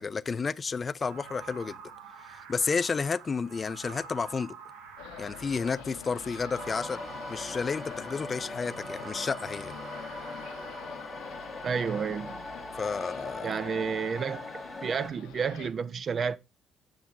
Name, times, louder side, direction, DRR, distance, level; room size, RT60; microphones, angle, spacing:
voice 1, 0.0-1.8 2.3-4.6 5.2-7.0 7.3-9.7 12.8-13.5, left 5 dB, 40° left, 0.3 m, -31 dB
sound 1, 1.0-10.8, right 6 dB, 80° right, 0.9 m, -47 dB
sound 2, 5.0-15.7, left 9 dB, 80° left, 0.8 m, -45 dB
sound 3, 6.6-15.1, left 1 dB, 10° left, 0.8 m, -41 dB
voice 2, 11.6-12.4 13.4-14.4 14.8-16.4, right 6 dB, 50° right, 0.5 m, -30 dB
7.4 x 6.9 x 2.5 m
hypercardioid pair, 55°, 0 cm